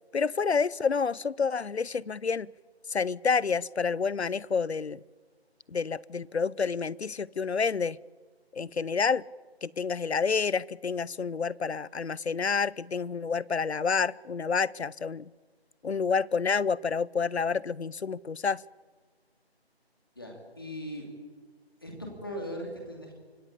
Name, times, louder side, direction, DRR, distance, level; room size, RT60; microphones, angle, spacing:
voice 1, 0.1-2.5 2.9-5.0 5.7-8.0 8.5-9.2 9.6-15.3 15.8-18.6, left 5 dB, 80° left, 24 dB, 0.7 m, -29 dB
voice 2, 20.2-21.0 21.8-23.1, equal, 20° left, 1 dB, 2.7 m, -39 dB
25.0 x 17.5 x 8.5 m, 1.5 s
figure-of-eight pair, 180°, 32 cm